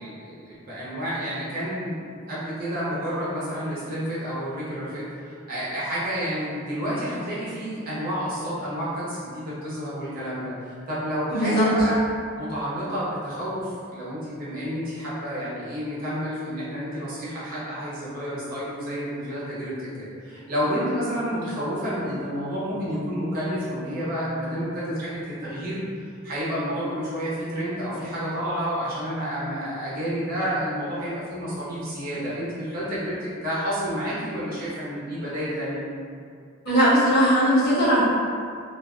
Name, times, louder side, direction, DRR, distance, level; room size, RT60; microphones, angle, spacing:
voice 1, 0.0-12.0 12.4-25.8 26.2-33.1 33.4-35.8, equal, 45° right, -9 dB, 0.8 m, -30 dB
voice 2, 11.3-11.7 36.6-38.0, equal, 50° left, -13 dB, 1.0 m, -19 dB
2.5 x 2.2 x 2.4 m, 2.2 s
head